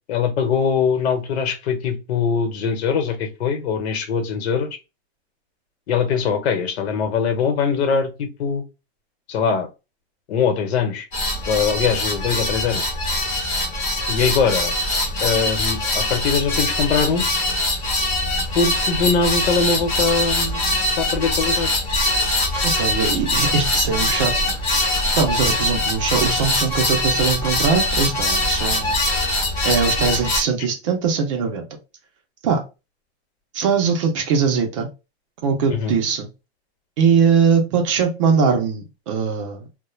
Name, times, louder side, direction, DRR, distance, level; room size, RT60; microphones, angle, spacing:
voice 1, 0.1-4.8 5.9-8.6 9.3-9.7 10.3-11.1 11.5-12.9 14.1-14.7 15.2-17.2 18.5-20.6 21.0-21.7 35.7-36.0, left 6 dB, 80° left, 7 dB, 0.9 m, -22 dB
sound 1, 11.1-30.4, left 1 dB, 20° left, 0.5 m, -22 dB
voice 2, 22.6-24.5 25.2-29.0 29.6-31.7 32.4-32.6 33.5-34.9 35.4-36.3 37.0-39.7, right 6 dB, 30° right, 4 dB, 0.4 m, -21 dB
2.3 x 2.0 x 3.1 m, 0.28 s
supercardioid pair, 180°, 32 cm